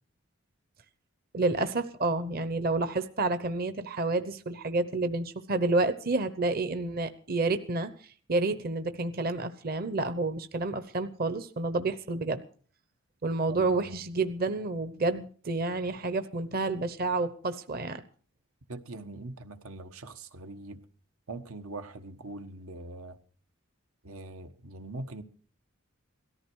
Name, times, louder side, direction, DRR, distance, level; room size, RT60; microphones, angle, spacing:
voice 1, 1.3-7.9 8.3-12.4 13.2-18.0, right 3 dB, 45° right, 0.9 m, -29 dB
voice 2, 13.5-14.0 18.7-20.8 21.3-23.2 24.0-25.2, right 2 dB, 90° right, 1.3 m, -42 dB
17.5 x 14.0 x 4.7 m
head